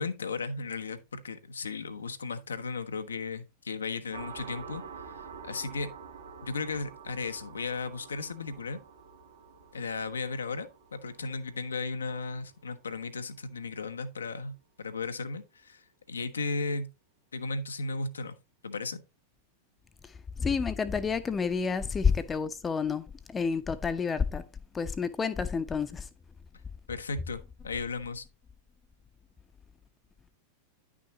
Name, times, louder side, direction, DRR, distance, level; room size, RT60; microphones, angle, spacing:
voice 1, 0.0-5.9 6.4-8.8 9.7-16.9 17.3-18.4 18.6-19.0 26.9-28.2, left 4 dB, 75° left, 0.9 m, -35 dB
sound 1, 4.1-13.4, right 6 dB, 65° right, 1.9 m, -48 dB
voice 2, 20.4-24.4 24.7-26.1, left 5 dB, 15° left, 0.8 m, -29 dB
10.0 x 6.2 x 2.9 m
figure-of-eight pair, 90°, 0 cm